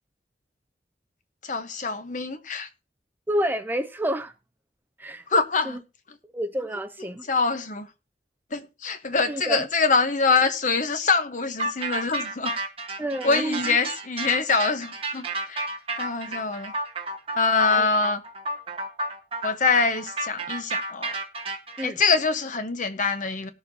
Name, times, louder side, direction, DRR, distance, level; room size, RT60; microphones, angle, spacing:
voice 1, 1.4-2.7 5.3-5.8 7.3-7.9 8.5-12.5 13.2-15.7 16.0-16.7 17.4-18.2 19.4-21.2 21.8-23.5, left 4 dB, 45° left, 1.0 m, -24 dB
voice 2, 3.3-4.3 5.0-5.2 5.6-5.8 6.3-7.3 9.3-9.6 13.0-13.8 17.7-17.9 21.8-22.0, equal, 10° right, 0.4 m, -29 dB
sound 1, 11.6-21.9, right 2 dB, 35° right, 1.3 m, -31 dB
18.5 x 6.9 x 2.7 m
head